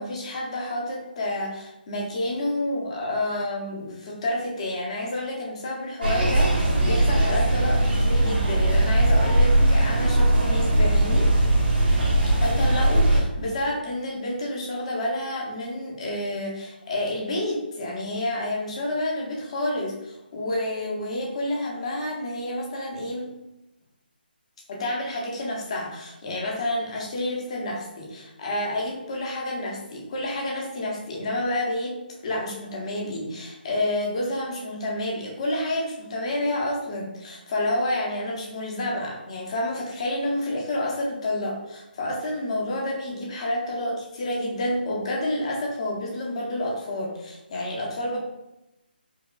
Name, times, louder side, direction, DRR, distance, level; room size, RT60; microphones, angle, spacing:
voice 1, 0.0-11.3 12.4-23.3 24.7-32.0 32.2-48.2, left 1 dB, 35° left, -1 dB, 0.7 m, -29 dB
sound 1, 6.0-13.2, right 1 dB, 75° right, 1.1 m, -20 dB
4.6 x 2.3 x 2.3 m, 0.93 s
hypercardioid pair, 165°, 6 cm